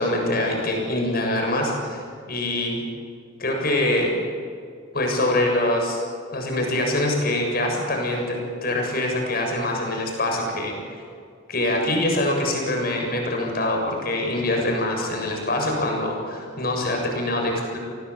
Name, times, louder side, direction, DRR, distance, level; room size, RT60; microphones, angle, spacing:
voice 1, 0.0-2.0 2.3-2.8 3.4-4.1 4.9-6.0 6.3-10.8 11.5-17.8, left 1 dB, 50° left, 1 dB, 7.2 m, -24 dB
30.0 x 19.0 x 8.7 m, 2.3 s
head